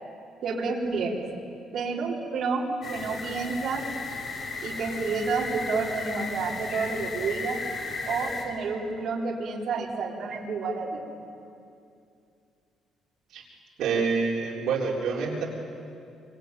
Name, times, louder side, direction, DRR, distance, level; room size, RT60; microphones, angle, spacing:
voice 1, 0.4-1.2 1.7-3.9 4.6-7.6 8.1-11.0, right 4 dB, 50° right, -3 dB, 4.0 m, -29 dB
sound 1, 2.8-8.4, left 3 dB, 35° left, 4.4 m, -35 dB
voice 2, 13.8-15.5, right 5 dB, 65° right, -2 dB, 3.9 m, -27 dB
25.5 x 24.0 x 9.2 m, 2.5 s
cardioid pair, 165°, 0 cm